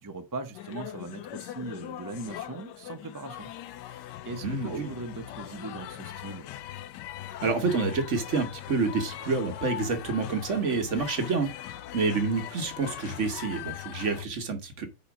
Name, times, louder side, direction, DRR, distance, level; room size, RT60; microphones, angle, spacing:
voice 1, 0.0-3.5 3.8-6.5, right 3 dB, 30° right, 0.3 m, -40 dB
sound 1, 0.5-14.3, left 12 dB, 85° left, 1.2 m, -41 dB
voice 2, 4.4-4.9 7.4-14.9, right 4 dB, 50° right, 1.3 m, -28 dB
5.2 x 4.3 x 5.9 m
omnidirectional pair, 1.8 m